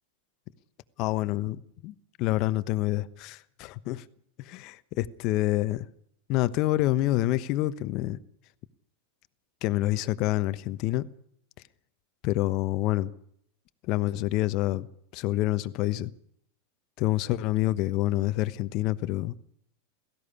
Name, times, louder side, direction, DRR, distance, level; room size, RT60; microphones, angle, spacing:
voice 1, 1.0-4.0 4.4-5.9 6.3-8.2 9.6-11.0 12.2-13.1 13.9-14.9 15.1-16.1 17.0-19.3, left 16 dB, 50° left, 1.0 m, -27 dB
17.0 x 15.5 x 10.0 m
hypercardioid pair, 100°, 0 cm